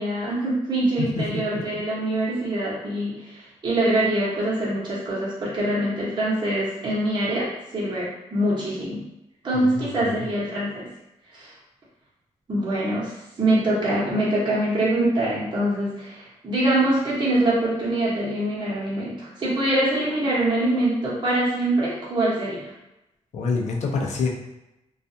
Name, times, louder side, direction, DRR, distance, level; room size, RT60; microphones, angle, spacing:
voice 1, 0.0-7.5 7.7-9.0 9.4-10.9 11.3-11.5 12.5-22.7, right 1 dB, 40° right, -8 dB, 1.0 m, -24 dB
voice 2, 23.3-24.3, left 4 dB, 70° left, 0 dB, 0.5 m, -26 dB
2.4 x 2.3 x 2.6 m, 0.92 s
cardioid pair, 85°, 12 cm